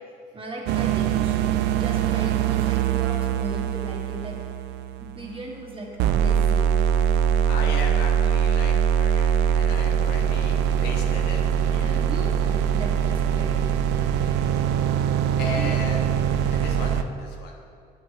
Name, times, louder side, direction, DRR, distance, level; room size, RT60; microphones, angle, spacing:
voice 1, 0.3-1.5 1.8-4.4 5.0-6.9 11.8-13.8 15.5-15.8, right 2 dB, 30° right, 0 dB, 1.3 m, -37 dB
sound 1, 0.7-5.6 6.0-17.0, right 8 dB, 85° right, 0.4 m, -23 dB
voice 2, 7.5-11.4 11.6-12.1 14.2-14.3 15.4-16.0 16.5-17.6, left 3 dB, 75° left, 0 dB, 1.3 m, -36 dB
8.6 x 8.0 x 2.9 m, 2.2 s
cardioid pair, 110°, 17 cm